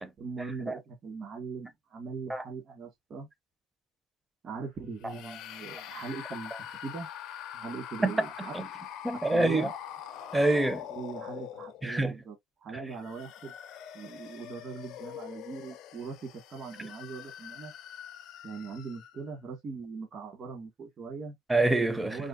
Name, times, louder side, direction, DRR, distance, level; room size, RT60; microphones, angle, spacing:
voice 1, 0.2-3.3 4.4-7.1 7.5-8.5 9.3-9.7 10.9-12.4 12.6-13.5 13.9-17.7 18.4-21.4 22.0-22.3, right 4 dB, 45° right, 1.8 m, -40 dB
sound 1, 5.0-12.1 12.8-19.3, left 10 dB, 60° left, 0.5 m, -44 dB
voice 2, 9.0-9.7 10.3-10.9 11.8-12.2 21.5-22.2, right 2 dB, 10° right, 0.7 m, -26 dB
4.8 x 2.0 x 2.6 m
supercardioid pair, 95°, 0 cm